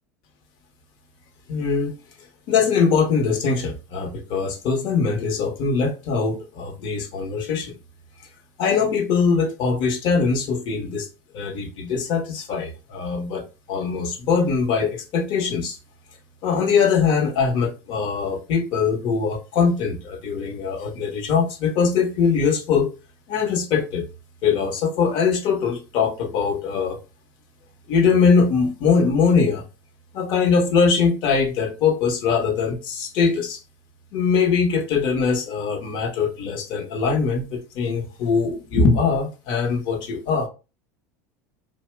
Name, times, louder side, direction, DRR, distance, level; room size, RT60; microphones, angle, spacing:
voice 1, 1.5-1.9 2.5-7.8 8.6-11.1 11.3-15.8 16.4-22.9 23.3-24.0 24.4-27.0 27.9-29.6 30.1-33.6 34.1-40.5, left 5 dB, 55° left, 0.8 m, -22 dB
2.8 x 2.1 x 3.2 m
hypercardioid pair, 95°, 9 cm